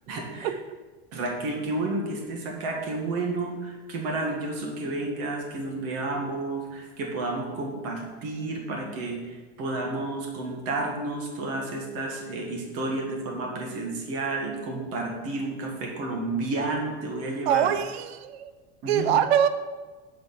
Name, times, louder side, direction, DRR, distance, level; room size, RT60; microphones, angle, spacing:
voice 1, 0.1-0.5 1.1-17.7 18.8-19.0, right 2 dB, 50° right, 1 dB, 2.0 m, -31 dB
voice 2, 17.5-18.5 18.9-19.5, right 9 dB, 90° right, 11 dB, 0.7 m, -23 dB
6.6 x 4.8 x 6.1 m, 1.3 s
supercardioid pair, 140°, 30 cm